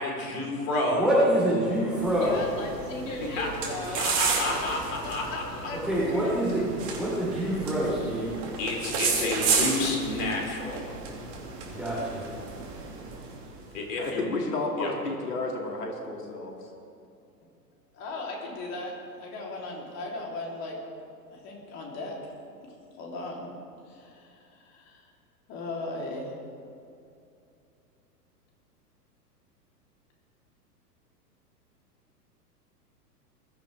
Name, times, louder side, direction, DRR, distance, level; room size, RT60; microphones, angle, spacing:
voice 1, 0.0-1.1 3.2-3.5 3.9-5.4 8.6-10.9 13.7-14.3 14.8-14.9, left 2 dB, 50° left, 0 dB, 4.1 m, -30 dB
voice 2, 0.9-2.4 5.8-8.4 11.6-12.3, equal, ahead, -8 dB, 4.1 m, -26 dB
sound 1, 1.9-13.7, right 5 dB, 40° right, 2.7 m, -32 dB
voice 3, 2.2-4.0 4.4-4.7 5.0-5.8 6.1-6.7 11.4-11.6 17.9-20.8 21.3-22.2 22.6-23.5 23.9-25.1 25.5-26.3, left 2 dB, 35° left, -1 dB, 3.5 m, -37 dB
voice 4, 14.0-16.5, left 2 dB, 75° left, 1 dB, 2.5 m, -31 dB
21.0 x 13.5 x 3.5 m, 2.6 s
figure-of-eight pair, 100°, 48 cm